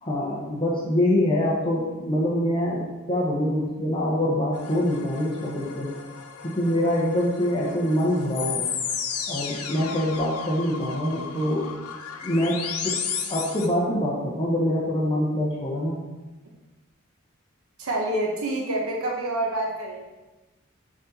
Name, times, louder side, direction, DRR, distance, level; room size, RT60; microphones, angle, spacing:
voice 1, 0.0-5.9 6.4-8.7 9.3-11.7 12.2-13.0 13.3-16.0, left 1 dB, 25° left, -4 dB, 0.8 m, -25 dB
sound 1, 4.5-13.7, left 7 dB, 90° left, 0.6 m, -34 dB
voice 2, 17.8-20.0, right 1 dB, 80° right, -1 dB, 0.9 m, -27 dB
6.2 x 3.9 x 4.1 m, 1.1 s
head